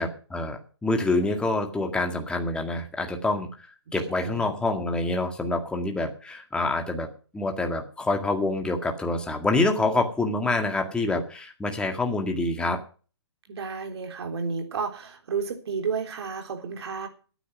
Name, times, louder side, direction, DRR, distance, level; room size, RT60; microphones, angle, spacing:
voice 1, 0.0-3.7 3.9-7.1 7.3-12.8, left 2 dB, 5° left, 3 dB, 1.9 m, -26 dB
voice 2, 3.9-4.6 13.5-17.1, right 5 dB, 70° right, 4 dB, 3.6 m, -32 dB
14.5 x 9.1 x 6.2 m, 0.38 s
hypercardioid pair, 135°, 14 cm